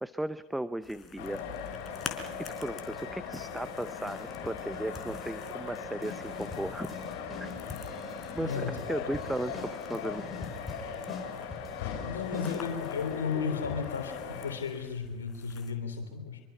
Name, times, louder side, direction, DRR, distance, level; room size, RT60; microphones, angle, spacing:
voice 1, 0.0-1.4 2.6-6.9 7.4-7.5 8.3-10.8, right 1 dB, 5° right, 13 dB, 0.8 m, -36 dB
sound 1, 0.8-15.7, left 6 dB, 35° left, 4.4 m, -50 dB
sound 2, 1.2-14.5, left 6 dB, 60° left, 7.2 m, -39 dB
sound 3, 2.6-3.0 3.4-3.8 4.1-5.4 5.8-13.2, left 4 dB, 15° left, 7.8 m, -44 dB
voice 2, 8.4-8.7 9.0-9.1 12.0-16.4, left 6 dB, 80° left, 5 dB, 3.4 m, -34 dB
25.5 x 24.0 x 5.6 m, 1.2 s
hypercardioid pair, 80°, 0 cm